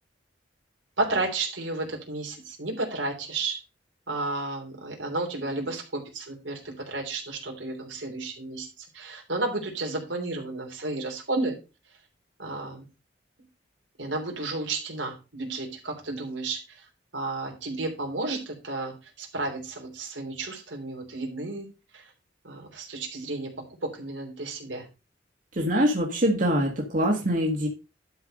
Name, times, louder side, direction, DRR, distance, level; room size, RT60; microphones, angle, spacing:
voice 1, 1.0-3.6 4.1-11.6 12.4-12.9 14.0-16.9 17.1-21.7 21.9-22.1 22.4-24.8, right 2 dB, 90° right, 1 dB, 3.2 m, -32 dB
voice 2, 25.5-27.7, equal, 45° right, 1 dB, 1.8 m, -24 dB
11.5 x 4.8 x 5.2 m, 0.30 s
head